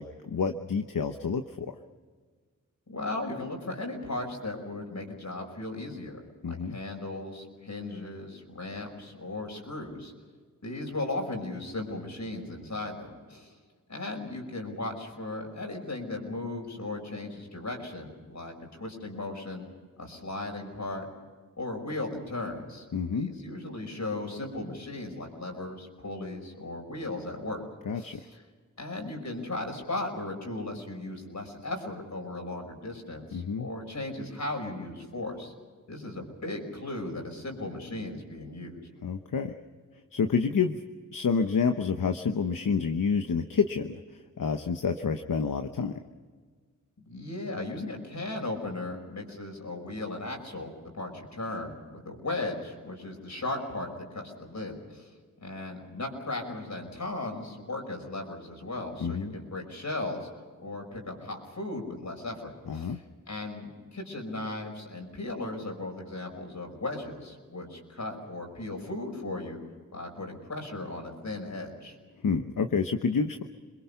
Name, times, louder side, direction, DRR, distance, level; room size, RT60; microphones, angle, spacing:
voice 1, 0.0-1.7 6.4-6.8 22.9-23.3 27.9-28.3 33.3-33.7 39.0-39.6 40.1-40.8 41.1-45.9 59.0-59.3 62.7-63.0 72.2-73.4, left 5 dB, 80° left, 7 dB, 1.0 m, -28 dB
voice 2, 2.9-10.1 10.6-13.5 13.9-19.6 20.0-21.1 21.6-22.9 23.1-27.6 28.0-28.2 28.8-35.5 35.9-38.8 47.0-55.1 55.4-60.3 60.6-63.0 63.3-69.6 69.9-72.0, left 2 dB, 60° left, 2 dB, 5.7 m, -36 dB
27.5 x 22.0 x 5.8 m, 1.5 s
cardioid pair, 55°, 32 cm